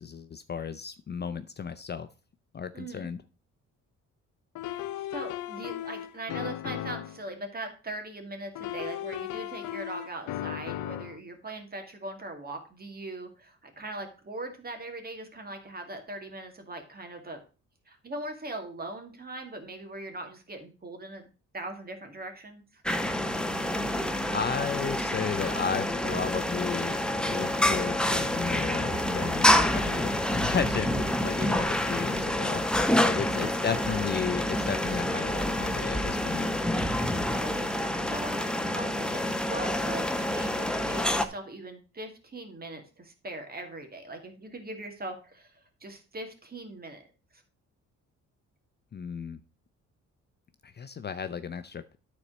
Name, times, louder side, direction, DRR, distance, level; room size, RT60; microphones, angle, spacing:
voice 1, 0.0-2.1 2.5-3.2 24.3-27.0 27.3-32.6 33.0-36.5 48.9-49.4 50.6-52.0, left 6 dB, 35° left, 11 dB, 0.6 m, -33 dB
voice 2, 2.7-3.1 4.7-17.4 17.9-21.3 21.5-22.8 31.4-31.7 33.3-33.5 37.4-37.5 38.0-47.0 47.3-47.4, right 2 dB, 30° right, 5 dB, 2.2 m, -40 dB
sound 1, 4.6-7.2 8.6-11.2, left 13 dB, 85° left, 0.6 m, -36 dB
sound 2, 22.9-41.3, left 1 dB, 5° left, 0.9 m, -27 dB
9.7 x 4.3 x 6.1 m, 0.35 s
cardioid pair, 90°, 30 cm